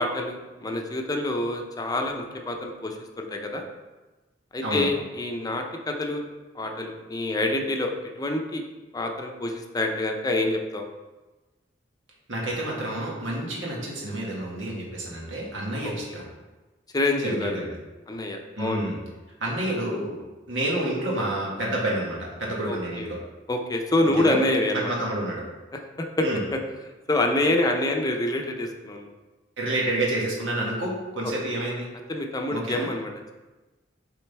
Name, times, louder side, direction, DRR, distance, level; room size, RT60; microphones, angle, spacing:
voice 1, 0.0-3.6 4.5-6.3 6.5-8.6 8.9-10.8 16.9-17.6 18.1-18.8 22.6-23.1 23.5-24.9 26.0-26.1 26.5-26.6 27.1-29.1 32.1-33.3, left 1 dB, 20° left, 3 dB, 0.6 m, -26 dB
voice 2, 12.3-16.3 17.2-17.8 18.6-19.0 19.4-20.2 20.5-23.2 24.2-24.4 24.7-25.4 26.2-26.4 29.6-31.9 32.5-32.9, right 1 dB, 85° right, -3 dB, 1.7 m, -29 dB
7.4 x 3.8 x 3.4 m, 1.2 s
head